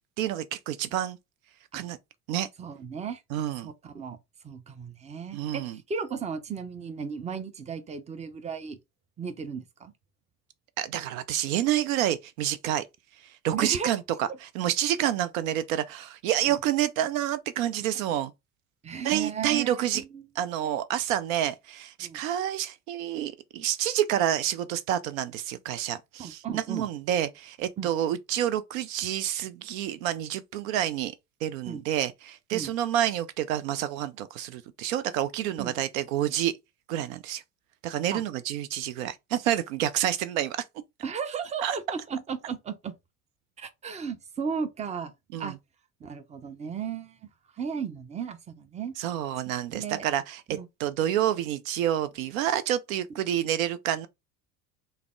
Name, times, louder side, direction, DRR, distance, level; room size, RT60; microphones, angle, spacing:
voice 1, 0.2-1.2 1.7-2.0 2.3-2.5 3.3-3.7 5.3-5.8 10.8-12.8 13.4-18.3 19.0-20.0 20.4-31.1 31.4-36.5 36.9-37.4 37.8-40.6 41.6-41.8 45.3-45.6 49.0-50.4 50.8-54.1, right 11 dB, 60° right, 0.5 m, -28 dB
voice 2, 2.6-3.2 3.6-4.2 4.4-8.8 9.2-9.9 13.5-13.9 16.5-16.6 18.8-20.3 20.6-20.7 22.0-22.2 26.2-26.8 27.8-27.9 31.7-31.8 32.5-32.7 35.6-35.7 38.1-38.2 41.0-42.9 43.6-45.1 45.4-45.5 46.0-47.2 47.6-48.9 49.7-50.1 50.5-50.7, right 6 dB, 15° right, 0.6 m, -35 dB
3.4 x 2.1 x 3.6 m
figure-of-eight pair, 65°, 46 cm